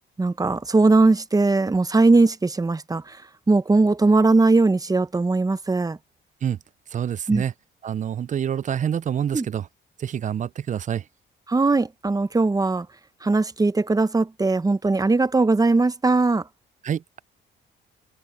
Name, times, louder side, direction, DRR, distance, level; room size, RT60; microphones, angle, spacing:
voice 1, 0.2-3.2 3.5-6.0 7.3-7.4 9.3-9.5 11.5-12.9 13.2-16.4, right 3 dB, 20° right, 1.0 m, -19 dB
voice 2, 6.9-7.5 7.8-9.7 10.0-11.0 16.8-17.2, right 9 dB, 40° right, 0.4 m, -27 dB
cardioid pair, 90°, 20 cm